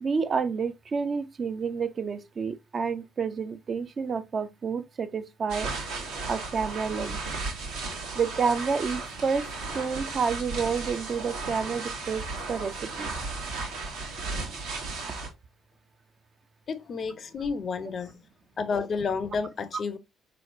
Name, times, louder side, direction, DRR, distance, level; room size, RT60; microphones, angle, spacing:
voice 1, 0.0-5.7 6.3-7.2 8.1-13.1, right 5 dB, 40° right, 0.4 m, -29 dB
sound 1, 5.5-15.3, right 3 dB, 70° right, 1.0 m, -35 dB
voice 2, 16.7-18.2 18.6-20.0, left 5 dB, 45° left, 0.5 m, -31 dB
4.0 x 3.1 x 2.6 m
figure-of-eight pair, 50°, 0 cm